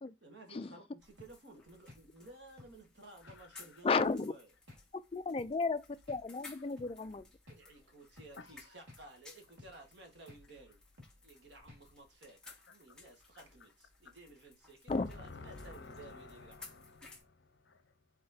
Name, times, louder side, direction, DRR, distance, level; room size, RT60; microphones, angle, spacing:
voice 1, 0.2-4.5 7.5-10.8 11.2-12.4 12.7-16.8, right 2 dB, 65° right, 1.5 m, -55 dB
sound 1, 1.0-17.2, left 3 dB, 5° left, 1.0 m, -59 dB
sound 2, 1.2-1.4 1.9-2.1 2.6-2.8 3.3-3.4 4.0-4.2 4.7-4.8 5.4-5.6 6.1-6.3 6.8-6.9 7.5-7.6 8.2-8.3 8.9-9.1 9.6-9.8 10.3-10.4 11.0-11.2 11.7-11.9, left 2 dB, 90° right, 2.2 m, -55 dB
voice 2, 3.2-3.8 8.4-8.8 12.4-13.0 13.3-13.4 14.9-18.1, left 3 dB, 70° left, 0.8 m, -52 dB
voice 3, 3.8-4.3 5.1-7.3 14.9-15.1, left 4 dB, 30° left, 0.3 m, -33 dB
4.2 x 3.8 x 2.7 m
head